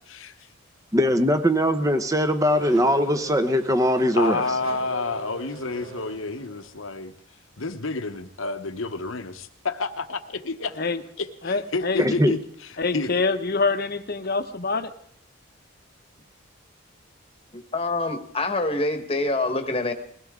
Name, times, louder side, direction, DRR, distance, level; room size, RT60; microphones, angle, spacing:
voice 1, 0.9-4.4 12.0-12.3, equal, 15° right, 9 dB, 0.9 m, -21 dB
Race car auto racing / Accelerating revving vroom, 1.5-6.9, right 3 dB, 80° right, 2.0 m, -42 dB
voice 2, 4.2-7.1 7.6-10.8 11.2-12.4 12.9-13.1, left 3 dB, 70° left, 8 dB, 1.1 m, -29 dB
voice 3, 11.4-12.0 12.8-14.9, left 4 dB, 45° left, 8 dB, 1.0 m, -25 dB
voice 4, 17.7-19.9, left 2 dB, 25° left, 6 dB, 1.3 m, -25 dB
21.0 x 17.0 x 3.7 m, 0.64 s
head